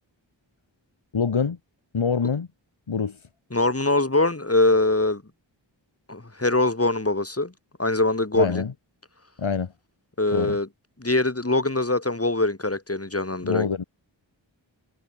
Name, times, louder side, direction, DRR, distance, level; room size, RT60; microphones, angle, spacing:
voice 1, 1.1-1.6 1.9-2.5 2.9-3.2 8.3-8.7 9.4-9.7 10.3-10.6 13.4-13.8, left 5 dB, 90° left, 6.3 m, -25 dB
voice 2, 3.5-5.2 6.1-7.5 7.8-8.6 10.2-10.7 11.0-13.7, left 2 dB, 30° left, 7.5 m, -23 dB
cardioid pair, 50°, 46 cm